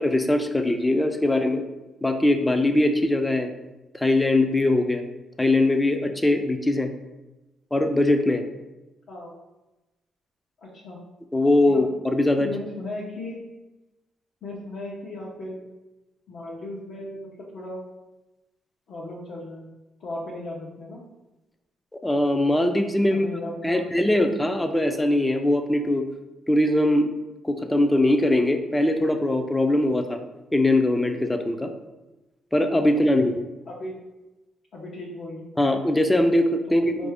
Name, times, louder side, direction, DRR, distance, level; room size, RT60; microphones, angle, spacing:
voice 1, 0.0-1.6 2.0-3.5 3.9-5.0 5.4-6.9 7.7-8.4 11.3-12.5 22.0-23.3 23.6-26.0 26.5-27.1 27.4-30.2 30.5-31.7 32.5-33.4 35.6-36.9, left 1 dB, 10° left, 6 dB, 0.4 m, -21 dB
voice 2, 10.6-11.0 11.6-11.9 12.3-13.4 14.4-15.6 16.3-17.8 18.9-19.7 20.0-21.0 23.1-24.2 33.7-33.9 34.7-35.5 36.7-37.1, left 2 dB, 65° left, -5 dB, 0.8 m, -36 dB
4.5 x 2.6 x 3.4 m, 1.0 s
cardioid pair, 90°, 0 cm